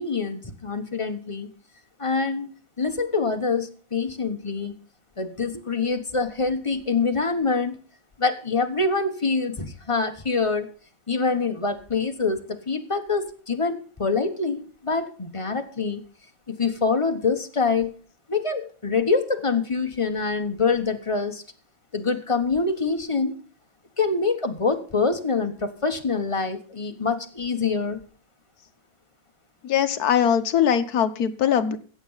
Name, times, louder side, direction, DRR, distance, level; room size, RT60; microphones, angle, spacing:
voice 1, 0.0-1.5 2.0-2.5 2.8-4.7 5.2-7.8 8.2-10.7 11.1-16.0 16.5-17.9 18.3-21.4 21.9-23.4 24.0-28.0, left 4 dB, 20° left, 6 dB, 0.9 m, -25 dB
voice 2, 29.6-31.8, left 8 dB, 55° left, 9 dB, 1.4 m, -21 dB
16.0 x 7.5 x 5.7 m, 0.39 s
omnidirectional pair, 2.1 m